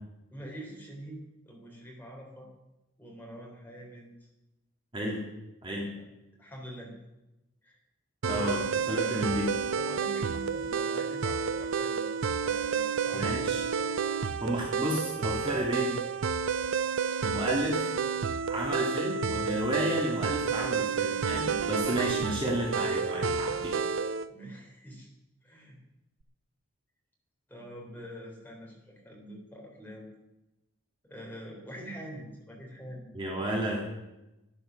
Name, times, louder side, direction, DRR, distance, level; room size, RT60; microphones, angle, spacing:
voice 1, 0.3-2.5 3.0-4.3 6.4-6.9 7.6-7.8 8.2-9.4 9.8-12.1 12.4-13.4 17.6-17.7 24.3-25.1 25.4-25.8 27.5-30.0 31.0-33.1, equal, 10° left, -2 dB, 3.5 m, -45 dB
voice 2, 5.6-5.9 8.2-8.6 8.9-9.5 13.1-13.7 14.4-16.0 17.2-17.8 18.5-23.8 33.1-33.8, right 1 dB, 25° right, -2 dB, 1.9 m, -32 dB
sound 1, 8.2-24.3, right 6 dB, 70° right, 0.5 m, -30 dB
11.5 x 11.5 x 6.3 m, 0.97 s
head